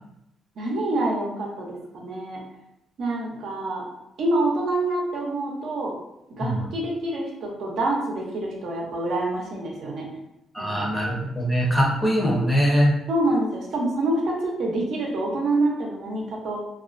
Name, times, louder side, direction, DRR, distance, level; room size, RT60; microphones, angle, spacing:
voice 1, 0.6-2.4 3.0-3.9 4.2-6.0 6.3-10.1 10.6-10.9 13.1-16.6, right 2 dB, 70° right, -2 dB, 0.6 m, -26 dB
voice 2, 10.5-12.9, equal, 10° left, -3 dB, 0.7 m, -22 dB
2.4 x 2.2 x 2.4 m, 0.85 s
cardioid pair, 90°, 0 cm